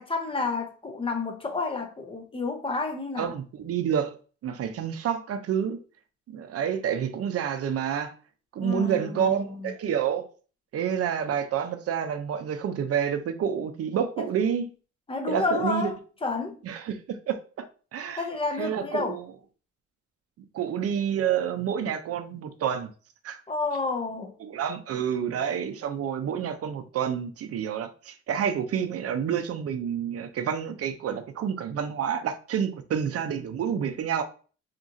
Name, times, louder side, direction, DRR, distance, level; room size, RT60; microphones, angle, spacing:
voice 1, 0.0-3.3 8.6-9.7 15.1-16.6 18.2-19.2 23.5-24.3, left 3 dB, 20° left, 0.7 m, -30 dB
voice 2, 3.2-4.1 4.4-5.8 6.3-8.1 8.5-10.3 10.7-14.7 15.3-15.9 16.6-17.7 17.9-18.2 18.6-19.2 20.5-22.9 23.2-23.4 24.4-34.2, right 8 dB, 50° right, 0.5 m, -28 dB
2.9 x 2.3 x 2.6 m
cardioid pair, 90°, 30 cm